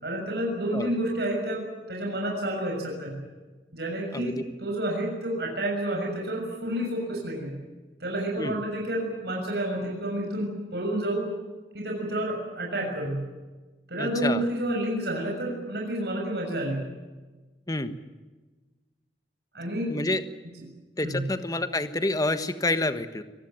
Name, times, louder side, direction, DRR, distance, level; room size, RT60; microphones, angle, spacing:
voice 1, 0.0-3.2 3.7-7.6 8.0-11.3 11.7-13.2 13.9-16.8 19.5-20.0 21.0-21.3, right 1 dB, 65° right, 0 dB, 6.6 m, -30 dB
voice 2, 14.0-14.4 17.7-17.9 19.9-20.2 21.0-23.2, left 2 dB, 20° left, 9 dB, 1.4 m, -28 dB
25.5 x 19.0 x 9.0 m, 1.2 s
head